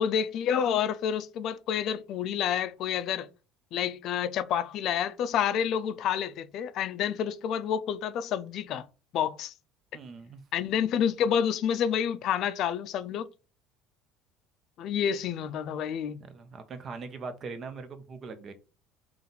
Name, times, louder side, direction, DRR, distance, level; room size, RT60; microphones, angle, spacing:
voice 1, 0.0-3.3 3.7-8.9 9.1-9.5 10.5-13.3 14.8-16.2, left 8 dB, 60° left, 0.4 m, -29 dB
voice 2, 9.9-10.4 16.2-18.5, right 4 dB, 45° right, 0.8 m, -41 dB
3.8 x 2.4 x 4.0 m
supercardioid pair, 80°, 0 cm